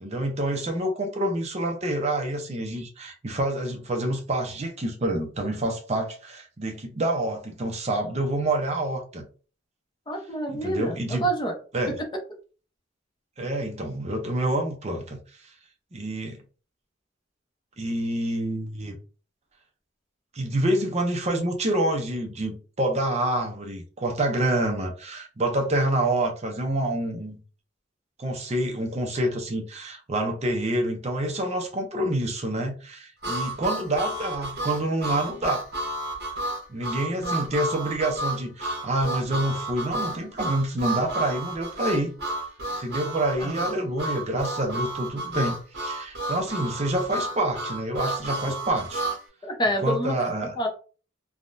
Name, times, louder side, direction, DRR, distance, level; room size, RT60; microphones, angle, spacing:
voice 1, 0.0-9.3 10.5-11.3 11.7-12.0 13.4-15.5 15.9-16.4 17.8-19.0 20.3-27.4 28.2-35.6 36.7-42.1 42.8-49.0 49.8-50.5, right 1 dB, 35° right, 0.6 m, -27 dB
voice 2, 10.1-11.5 11.9-12.0 37.1-37.4 43.4-43.7 49.4-50.1 50.6-50.7, right 1 dB, 25° left, 0.7 m, -28 dB
Harmonica, 33.2-49.2, right 1 dB, 60° right, 1.1 m, -31 dB
3.5 x 2.2 x 2.5 m
head